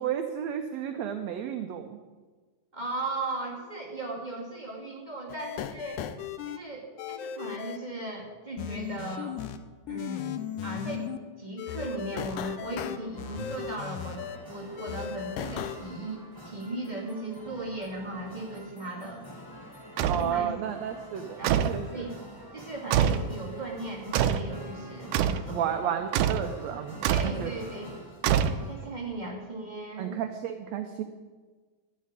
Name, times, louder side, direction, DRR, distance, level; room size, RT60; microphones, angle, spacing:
voice 1, 0.0-1.9 20.0-22.1 25.5-27.5 30.0-31.0, right 9 dB, 70° right, 6 dB, 1.8 m, -32 dB
voice 2, 2.7-6.0 6.4-9.4 9.9-10.4 10.6-14.2 14.5-19.2 20.1-20.5 20.9-21.0 21.4-21.6 21.9-22.2 22.5-25.7 27.1-27.9 28.4-30.2, right 2 dB, 15° right, -2 dB, 1.9 m, -37 dB
sound 1, 5.3-6.6 7.0-7.8 8.6-9.6 9.9-11.2 11.6-14.4 14.8-15.8, left 9 dB, 80° left, 2.1 m, -36 dB
sound 2, 13.1-28.8, equal, 10° left, 1.2 m, -47 dB
sound 3, 20.0-20.3 21.4-21.8 22.9-23.3 24.1-24.5 25.1-25.5 26.1-26.5 27.0-27.4 28.2-28.9, right 9 dB, 85° right, 2.1 m, -25 dB
13.5 x 6.7 x 9.6 m, 1.4 s
omnidirectional pair, 3.6 m